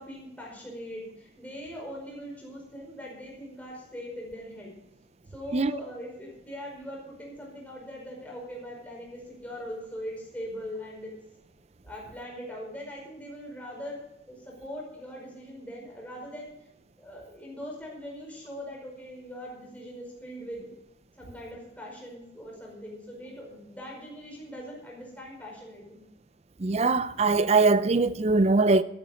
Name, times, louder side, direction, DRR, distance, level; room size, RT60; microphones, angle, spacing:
voice 1, 0.0-4.7 5.3-11.1 11.8-14.0 14.3-16.5 17.0-20.7 21.2-26.0, equal, 10° left, 5.0 m, -41 dB
voice 2, 26.6-28.8, right 3 dB, 35° right, 0.5 m, -22 dB
13.0 x 12.0 x 5.1 m
head